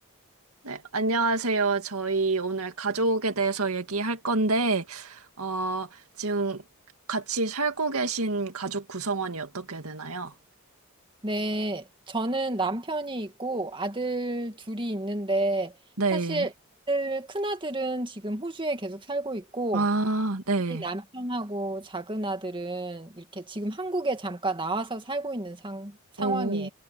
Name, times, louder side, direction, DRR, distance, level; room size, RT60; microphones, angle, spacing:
voice 1, 0.6-6.6 7.1-10.3 16.0-16.5 19.7-20.8 26.2-26.7, right 3 dB, 80° right, 2.1 m, -27 dB
voice 2, 11.2-15.7 16.1-16.5 16.9-19.9 20.7-26.7, right 2 dB, 20° right, 2.1 m, -30 dB
head